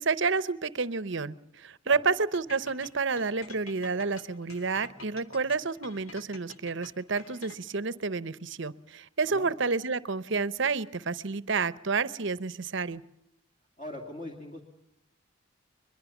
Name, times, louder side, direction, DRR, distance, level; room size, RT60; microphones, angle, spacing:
voice 1, 0.0-13.0, right 4 dB, 55° right, 17 dB, 0.8 m, -30 dB
sound 1, 2.3-7.9, left 4 dB, 75° left, 1.9 m, -48 dB
voice 2, 13.8-14.6, left 1 dB, 35° left, 1 dB, 2.5 m, -41 dB
22.5 x 22.0 x 7.2 m, 0.79 s
head